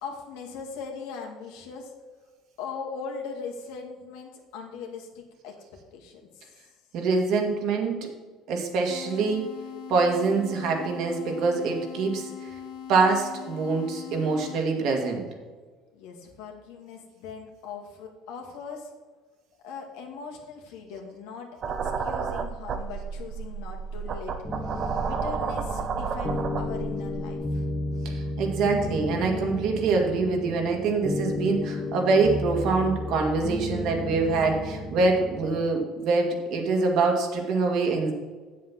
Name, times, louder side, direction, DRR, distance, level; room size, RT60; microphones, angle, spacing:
voice 1, 0.0-1.9 2.6-5.6 5.9-6.4 15.9-18.9 19.6-21.5 21.8-24.6 25.0-27.7, left 5 dB, 85° left, 1 dB, 2.0 m, -40 dB
voice 2, 6.9-8.0 8.5-9.4 9.9-12.3 12.9-15.2 28.0-38.1, right 4 dB, 65° right, 2 dB, 2.2 m, -25 dB
sound 1, 8.9-14.9, left 9 dB, 70° left, 1.7 m, -41 dB
sound 2, 21.6-27.3, right 6 dB, 45° right, 0.9 m, -31 dB
sound 3, 24.4-35.6, left 1 dB, 15° left, 1.1 m, -33 dB
8.0 x 7.4 x 6.1 m, 1.4 s
cardioid pair, 115°, 0 cm